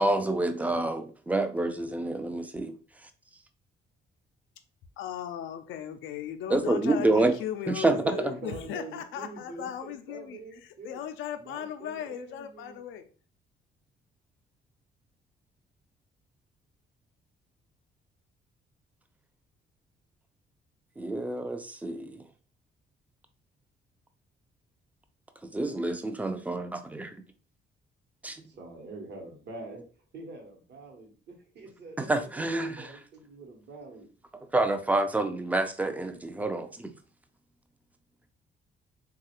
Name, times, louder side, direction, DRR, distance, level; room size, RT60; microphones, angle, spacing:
voice 1, 0.0-3.1 6.5-7.3 7.7-8.4 21.0-22.2 25.4-27.2 28.2-28.4 32.0-33.0 34.5-36.9, right 2 dB, 5° right, 0.4 m, -28 dB
voice 2, 5.0-13.1, left 9 dB, 80° left, 0.4 m, -37 dB
voice 3, 7.9-11.0 11.4-12.8 28.4-29.8 30.1-34.1, right 3 dB, 60° right, 1.0 m, -44 dB
3.1 x 2.3 x 2.9 m
cardioid pair, 90°, 20 cm